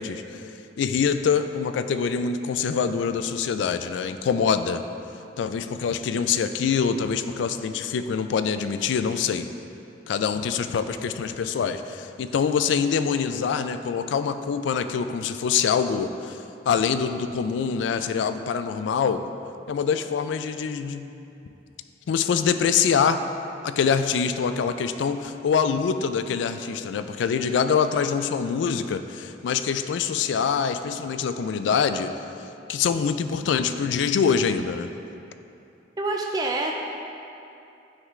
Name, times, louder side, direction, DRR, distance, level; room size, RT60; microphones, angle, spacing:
voice 1, 0.0-4.8 5.4-9.5 10.1-19.3 19.7-21.1 22.1-23.2 23.6-32.1 32.7-34.9, left 6 dB, 80° left, 10 dB, 0.3 m, -25 dB
voice 2, 36.0-36.7, right 2 dB, 20° right, 0 dB, 0.3 m, -26 dB
9.6 x 3.7 x 3.1 m, 2.7 s
head